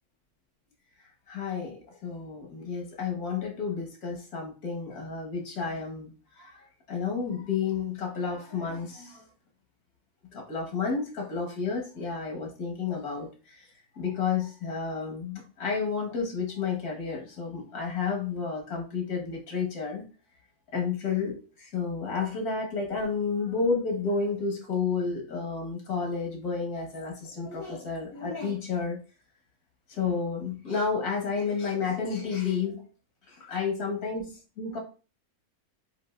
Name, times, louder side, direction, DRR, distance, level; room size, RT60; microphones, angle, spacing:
voice 1, 1.3-6.1 6.4-9.2 10.3-13.7 14.0-20.0 20.7-29.0 29.9-32.8 33.3-34.8, left 5 dB, 85° left, 0 dB, 1.9 m, -31 dB
7.6 x 2.7 x 2.4 m, 0.35 s
omnidirectional pair, 1.6 m